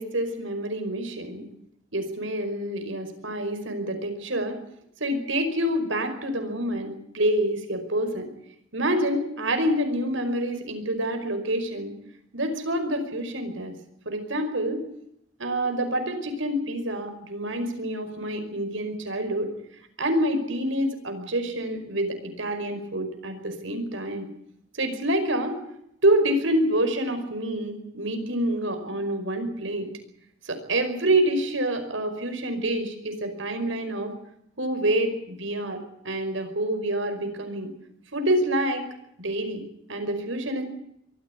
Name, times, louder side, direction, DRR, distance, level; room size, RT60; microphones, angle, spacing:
voice 1, 0.0-1.5 1.9-4.6 5.0-8.3 8.7-11.9 12.3-13.7 14.1-14.8 15.4-19.5 20.0-24.3 24.7-25.6 26.0-29.9 30.4-34.1 34.6-37.7 38.1-38.8 39.2-40.6, right 1 dB, 80° right, 7 dB, 5.2 m, -27 dB
23.5 x 15.0 x 9.5 m, 0.77 s
head